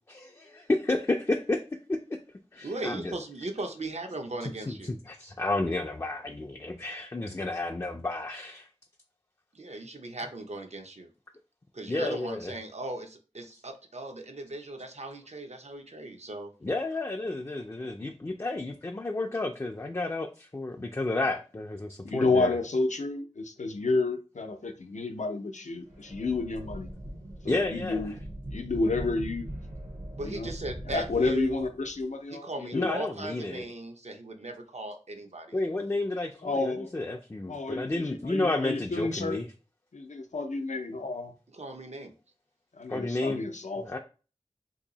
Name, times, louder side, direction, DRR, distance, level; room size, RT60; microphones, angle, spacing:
voice 1, 0.1-1.6 1.9-2.2 2.5-3.1 4.4-8.7 11.9-12.5 16.6-22.5 27.5-28.1 32.7-33.6 35.5-39.5 42.9-43.4 43.8-44.0, left 2 dB, 25° left, 0.3 m, -31 dB
voice 2, 2.6-4.9 9.5-11.1 11.7-16.5 30.2-31.7 32.3-35.6 41.5-42.1, right 2 dB, 65° right, 0.6 m, -38 dB
voice 3, 22.0-26.9 27.4-28.1 28.5-29.5 30.2-30.5 30.9-32.9 36.4-36.9 37.5-39.4 39.9-41.3 42.7-43.8, left 3 dB, 85° left, 0.5 m, -30 dB
sound 1, 25.9-32.0, right 1 dB, 90° right, 0.8 m, -41 dB
2.7 x 2.6 x 3.8 m
wide cardioid pair, 45°, 12 cm